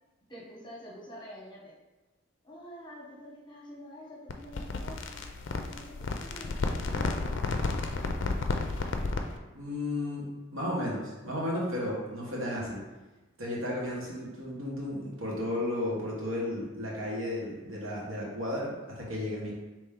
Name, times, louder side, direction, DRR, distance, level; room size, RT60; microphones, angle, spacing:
voice 1, 0.3-1.7 2.4-5.2 5.7-7.8, equal, 20° left, -4 dB, 0.9 m, -47 dB
sound 1, 4.3-9.4, left 3 dB, 60° left, 0.4 m, -32 dB
voice 2, 9.5-12.8 13.4-19.5, left 1 dB, 80° right, -5 dB, 1.4 m, -33 dB
4.3 x 3.1 x 3.6 m, 1.1 s
head